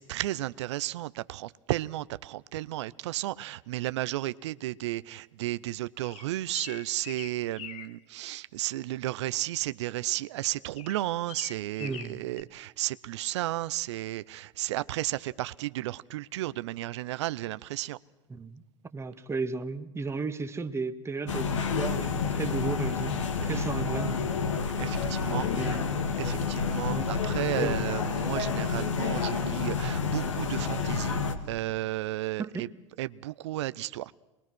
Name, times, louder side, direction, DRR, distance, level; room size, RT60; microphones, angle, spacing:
voice 1, 0.0-18.0 23.5-23.6 24.8-25.8 26.2-32.7 33.0-34.1, right 16 dB, 70° right, 0.7 m, -33 dB
sound 1, 6.0-7.9 10.7-12.4, left 9 dB, 45° left, 1.4 m, -43 dB
voice 2, 11.8-12.2 18.3-18.6 18.9-24.2 25.0-25.2 25.5-25.8 26.9-27.1 27.6-27.8 32.4-32.7, right 4 dB, 15° right, 1.6 m, -34 dB
sound 2, 21.3-31.3, left 5 dB, 80° left, 2.1 m, -29 dB
25.5 x 21.5 x 6.2 m
hypercardioid pair, 90°, 16 cm